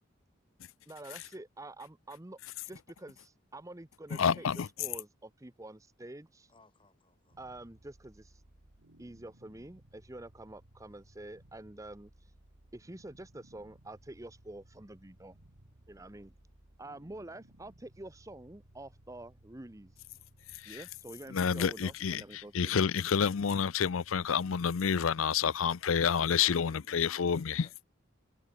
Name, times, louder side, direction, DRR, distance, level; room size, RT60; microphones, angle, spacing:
voice 1, 0.9-2.4 2.7-4.5 4.8-6.5 7.4-8.4 9.0-12.3 12.7-15.4 15.9-16.3 16.8-19.9 20.6-22.8, right 1 dB, 15° right, 0.8 m, -47 dB
voice 2, 4.1-4.7 20.6-20.8 21.3-27.7, left 7 dB, 85° left, 0.5 m, -29 dB
voice 3, 6.5-7.4 26.2-27.9, left 1 dB, 25° left, 6.5 m, -58 dB
sound 1, 7.3-26.3, right 1 dB, 85° right, 2.3 m, -62 dB
head